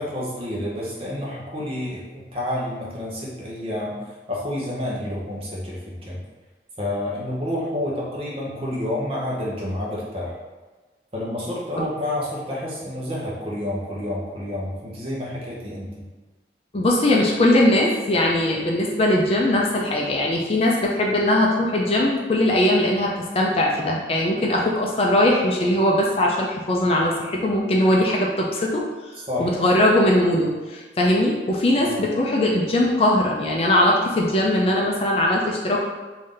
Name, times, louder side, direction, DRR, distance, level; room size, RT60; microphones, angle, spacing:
voice 1, 0.0-4.0 4.3-6.2 6.8-10.3 11.1-16.0 29.3-29.5 31.8-32.0, left 1 dB, 30° right, -5 dB, 0.8 m, -29 dB
voice 2, 16.7-28.8 29.4-35.8, left 1 dB, 35° left, -2 dB, 0.4 m, -20 dB
3.3 x 2.7 x 3.7 m, 1.3 s
head